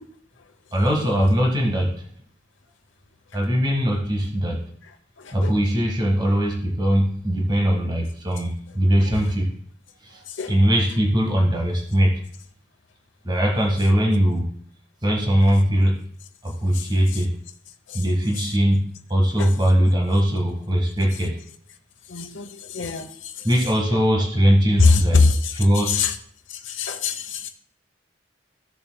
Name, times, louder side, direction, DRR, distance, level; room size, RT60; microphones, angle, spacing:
voice 1, 0.7-2.0 3.3-4.6 5.3-9.5 10.0-10.2 10.5-12.2 13.2-14.5 15.0-16.1 16.4-17.3 17.9-21.4 23.4-25.2 25.6-26.1, equal, 25° right, 0 dB, 1.8 m, -20 dB
voice 2, 5.2-5.5 10.3-10.5 16.7-16.9 17.9-18.0 19.4-19.5 22.1-23.5 24.8-25.6 25.9-26.1 26.5-27.5, left 4 dB, 85° left, 6 dB, 1.0 m, -22 dB
15.5 x 6.9 x 2.3 m, 0.62 s
head